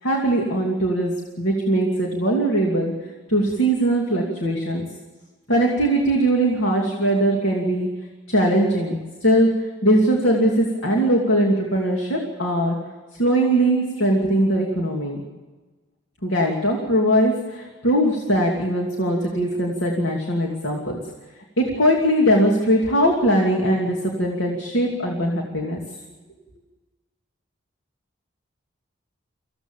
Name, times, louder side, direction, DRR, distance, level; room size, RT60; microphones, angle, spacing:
voice 1, 0.0-2.9 3.3-4.9 5.5-7.9 8.3-12.7 13.1-15.2 16.2-21.0 21.6-25.8, right 1 dB, 75° left, 0 dB, 2.7 m, -20 dB
25.0 x 16.0 x 7.3 m, 1.3 s
head